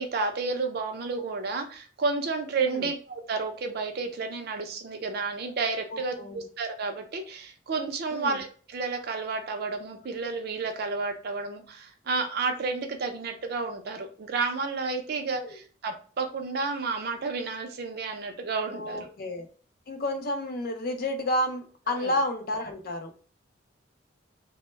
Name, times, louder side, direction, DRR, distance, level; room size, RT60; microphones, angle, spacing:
voice 1, 0.0-19.1 21.9-22.1, right 4 dB, 55° right, 5 dB, 0.5 m, -31 dB
voice 2, 5.9-6.4 8.1-8.4 15.3-15.6 18.7-19.5 19.9-23.1, left 1 dB, 50° left, 5 dB, 0.5 m, -31 dB
2.1 x 2.0 x 3.1 m, 0.40 s
head